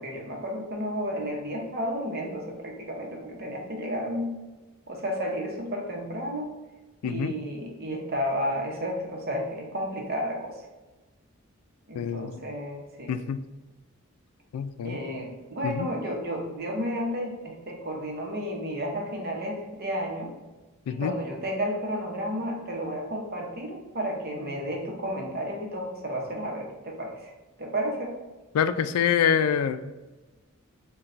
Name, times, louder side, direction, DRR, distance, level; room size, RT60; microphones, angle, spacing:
voice 1, 0.0-4.3 4.9-6.5 7.0-10.6 11.9-13.1 14.8-20.3 20.9-27.3 27.6-28.2, equal, 45° right, 0 dB, 0.8 m, -32 dB
voice 2, 7.0-7.3 11.9-12.4 13.1-13.4 14.5-15.0 15.6-15.9 20.9-21.1 28.5-29.9, left 8 dB, 90° left, 12 dB, 0.3 m, -26 dB
3.9 x 2.2 x 4.3 m, 1.1 s
head